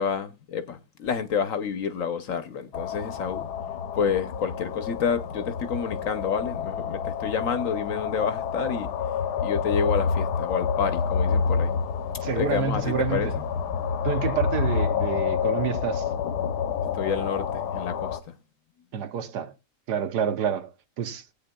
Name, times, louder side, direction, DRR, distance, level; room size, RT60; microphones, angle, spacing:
voice 1, 0.0-3.5 4.0-8.9 9.4-11.8 12.4-13.4 16.9-18.3, left 6 dB, 60° left, 1.0 m, -29 dB
sound 1, 2.7-18.2, left 6 dB, 75° left, 1.3 m, -28 dB
voice 2, 12.2-13.4 14.0-16.1 18.9-19.5 19.9-20.7 21.0-21.2, right 8 dB, 75° right, 1.4 m, -28 dB
19.0 x 8.5 x 2.2 m
omnidirectional pair, 1.8 m